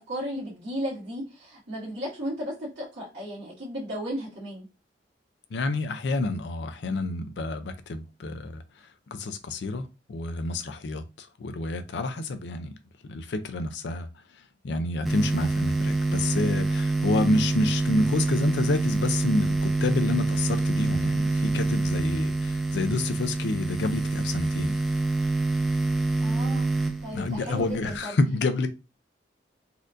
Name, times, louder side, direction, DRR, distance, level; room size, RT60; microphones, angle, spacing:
voice 1, 0.0-4.7 26.2-26.7 27.0-28.2, equal, 70° right, 1.7 m, -35 dB
voice 2, 5.5-8.6 9.1-12.7 13.1-14.1 14.6-24.8 27.1-28.7, left 2 dB, 75° left, 0.4 m, -28 dB
sound 1, 15.1-28.0, right 2 dB, ahead, 0.4 m, -26 dB
4.2 x 2.5 x 2.5 m
head